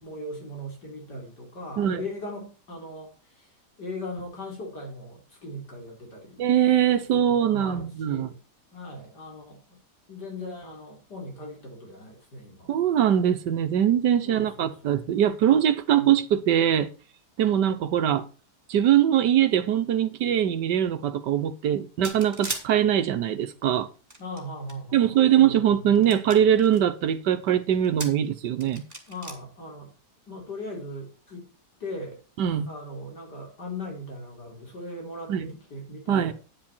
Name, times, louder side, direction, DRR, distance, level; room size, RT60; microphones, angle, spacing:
voice 1, 0.0-3.5 3.8-6.4 7.1-8.4 8.7-9.8 10.1-12.8 14.2-14.9 15.9-16.1 24.2-26.0 29.1-29.9 30.3-31.4 31.8-32.2 32.7-36.3, left 1 dB, 70° left, 4.4 m, -39 dB
voice 2, 6.4-8.3 12.7-16.9 17.4-18.3 18.7-23.9 24.9-28.8 32.4-32.7 35.3-35.5 36.1-36.3, right 10 dB, 85° right, 1.6 m, -22 dB
sound 1, 22.0-22.6 23.7-24.7 25.3-25.4 26.0-26.8 27.7-28.3 28.6-29.3, right 2 dB, 20° right, 2.8 m, -36 dB
9.9 x 9.7 x 4.4 m
omnidirectional pair, 1.8 m